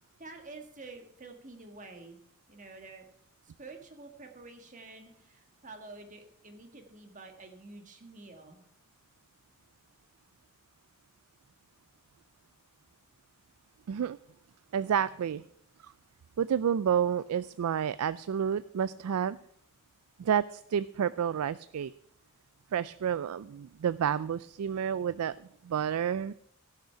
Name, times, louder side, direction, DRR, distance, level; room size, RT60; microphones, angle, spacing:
voice 1, 0.2-2.2 2.5-3.1 3.6-8.6, right 3 dB, 35° right, 4 dB, 1.6 m, -48 dB
voice 2, 13.9-14.2 14.7-15.4 15.8-15.9 16.4-19.4 20.2-21.9 22.7-26.3, right 8 dB, 90° right, 16 dB, 0.4 m, -30 dB
16.5 x 6.7 x 5.8 m, 0.70 s
head